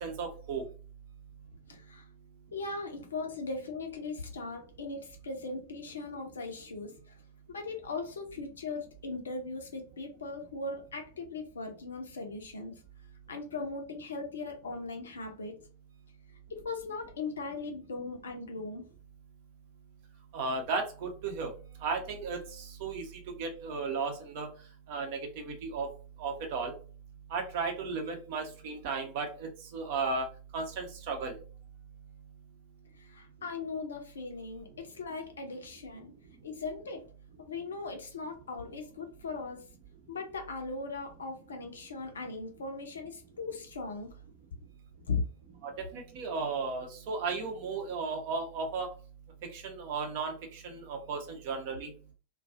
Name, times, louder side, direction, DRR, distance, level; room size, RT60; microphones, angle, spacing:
voice 1, 0.0-0.6 20.3-21.5 21.8-23.0 23.4-24.5 24.9-25.9 26.2-26.7 27.3-30.3 30.5-31.3 45.6-48.9 49.5-51.9, right 4 dB, 50° right, 4 dB, 0.7 m, -35 dB
voice 2, 1.7-2.1 2.5-7.2 7.5-12.7 13.3-15.5 16.5-18.9 33.0-36.1 36.4-37.0 37.4-39.6 40.1-44.1 45.1-45.2, left 3 dB, 70° left, 4 dB, 0.5 m, -39 dB
2.3 x 2.3 x 2.5 m, 0.38 s
figure-of-eight pair, 90°, 0 cm